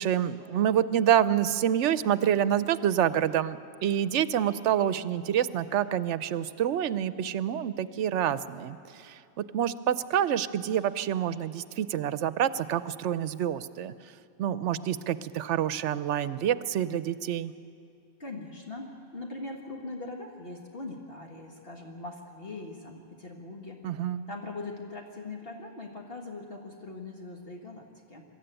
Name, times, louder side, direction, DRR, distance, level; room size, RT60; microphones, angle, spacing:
voice 1, 0.0-13.9 14.4-17.5 23.8-24.3, right 10 dB, 70° right, 15 dB, 0.9 m, -27 dB
voice 2, 18.2-23.8 24.3-28.2, left 2 dB, 50° left, 1 dB, 1.8 m, -41 dB
24.0 x 13.0 x 9.0 m, 2.5 s
omnidirectional pair, 1.3 m